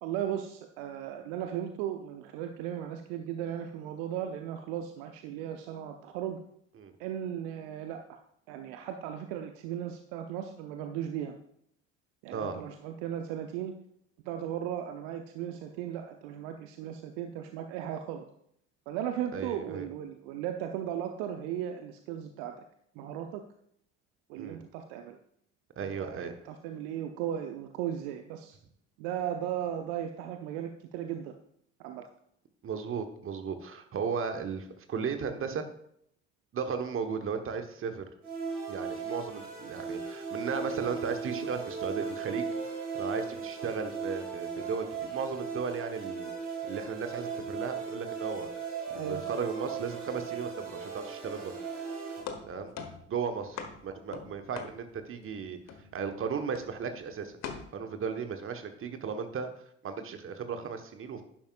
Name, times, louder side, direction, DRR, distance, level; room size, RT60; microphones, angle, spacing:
voice 1, 0.0-6.4 7.0-8.2 8.5-11.4 12.2-13.8 14.2-18.2 18.9-22.5 23.0-23.4 24.3-25.2 25.8-28.6 29.0-31.4 31.8-32.0 48.9-49.2, right 10 dB, 60° right, 6 dB, 0.8 m, -36 dB
voice 2, 19.3-19.9 24.3-24.6 25.8-26.3 32.6-35.6 36.5-38.0 38.7-42.5 42.8-46.3 46.6-48.5 48.9-51.5 52.4-52.7 53.1-55.6 55.9-57.4 57.7-59.5 59.8-61.2, right 6 dB, 35° right, 7 dB, 1.3 m, -35 dB
sound 1, 38.2-52.2, right 5 dB, 80° right, 2.2 m, -37 dB
sound 2, 52.2-55.3 55.7-56.1 56.5-56.9 57.4-57.6, left 6 dB, 45° left, 1.3 m, -42 dB
12.0 x 10.5 x 2.5 m, 0.70 s
figure-of-eight pair, 50°, 37 cm